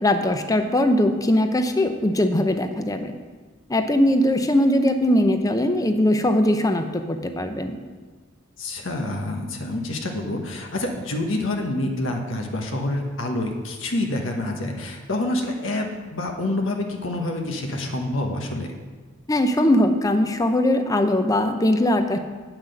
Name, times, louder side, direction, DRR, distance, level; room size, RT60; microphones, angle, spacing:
voice 1, 0.0-3.1 3.7-7.8 19.3-22.2, left 1 dB, 15° left, 7 dB, 0.6 m, -20 dB
voice 2, 8.6-18.7, left 1 dB, 70° left, 2 dB, 1.1 m, -27 dB
8.9 x 6.0 x 7.6 m, 1.5 s
head